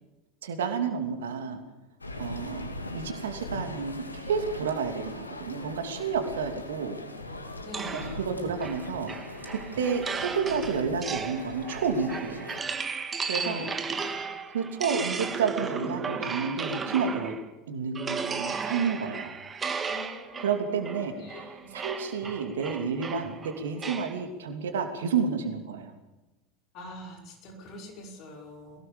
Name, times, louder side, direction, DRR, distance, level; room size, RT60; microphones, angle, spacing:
voice 1, 0.4-1.6 2.2-7.0 7.9-9.1 9.4-12.5 13.3-13.7 14.5-17.3 17.7-19.3 20.4-25.9, right 6 dB, 70° right, 6 dB, 2.8 m, -30 dB
sound 1, 2.0-12.6, left 1 dB, 85° left, 2.3 m, -40 dB
voice 2, 7.6-8.2 13.3-13.8 14.0-14.2 19.9-21.7 26.7-28.8, left 1 dB, 45° left, 2 dB, 5.5 m, -44 dB
sound 2, 7.7-17.5 18.0-24.2, right 5 dB, 20° right, 2.1 m, -35 dB
22.5 x 18.5 x 7.0 m, 1.1 s
figure-of-eight pair, 80°, 0 cm